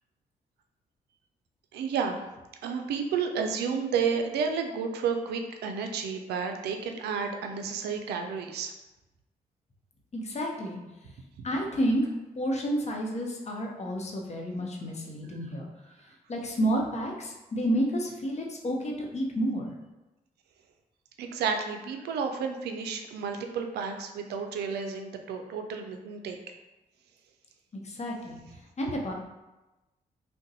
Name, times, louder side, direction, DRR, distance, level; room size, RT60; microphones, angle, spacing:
voice 1, 1.7-2.2 2.6-8.7 21.2-26.4, right 6 dB, 80° right, 5 dB, 0.4 m, -31 dB
voice 2, 10.1-10.8 11.4-12.0 12.3-15.6 16.3-19.7 27.8-28.4 28.8-29.1, equal, 40° left, 0 dB, 0.8 m, -30 dB
2.6 x 2.2 x 3.8 m, 1.0 s
supercardioid pair, 50°, 17 cm